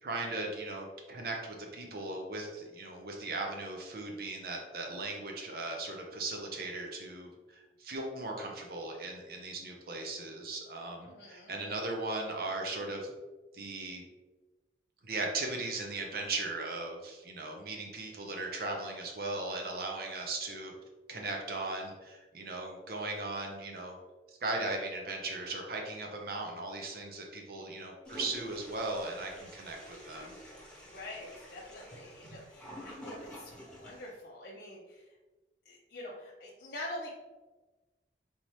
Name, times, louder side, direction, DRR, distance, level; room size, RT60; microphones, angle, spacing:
voice 1, 0.0-13.1 13.5-14.0 15.0-20.7 21.1-23.9 24.4-30.4, right 2 dB, 55° right, 1 dB, 0.7 m, -38 dB
voice 2, 11.0-11.5 30.8-35.1 35.6-37.1, left 1 dB, 65° left, -6 dB, 0.7 m, -45 dB
Toilet flush, 28.0-34.1, equal, 5° left, 1.0 m, -48 dB
4.1 x 3.4 x 3.0 m, 1.2 s
head